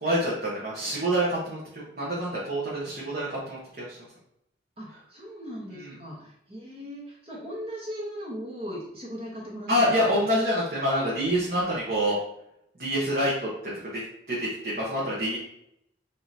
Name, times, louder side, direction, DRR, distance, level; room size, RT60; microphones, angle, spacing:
voice 1, 0.0-4.0 5.7-5.9 9.7-12.2 12.8-13.5 14.3-15.4, equal, 50° right, -7 dB, 1.0 m, -26 dB
voice 2, 4.8-10.3, equal, 30° right, -5 dB, 1.2 m, -38 dB
5.1 x 2.8 x 2.8 m, 0.77 s
head